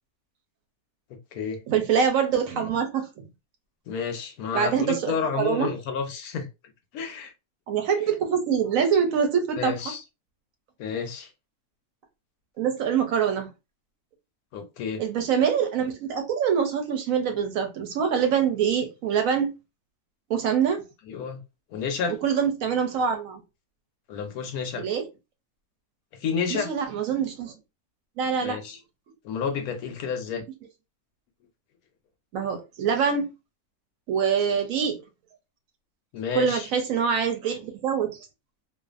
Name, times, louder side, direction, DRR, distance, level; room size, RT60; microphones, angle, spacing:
voice 1, 1.1-1.6 3.9-6.5 6.9-7.3 9.6-10.0 10.8-11.3 14.5-15.0 21.0-21.4 21.7-22.2 24.1-24.8 26.1-26.7 28.4-28.8 29.2-30.4 36.1-36.7, left 6 dB, 80° left, 1.1 m, -30 dB
voice 2, 1.7-3.2 4.5-5.7 7.7-9.7 12.6-13.5 15.0-19.5 20.3-20.8 22.2-23.4 24.8-25.0 26.5-27.5 28.2-28.6 32.3-33.3 34.1-35.0 36.3-38.3, right 7 dB, 70° right, 0.9 m, -24 dB
2.5 x 2.4 x 2.4 m
omnidirectional pair, 1.6 m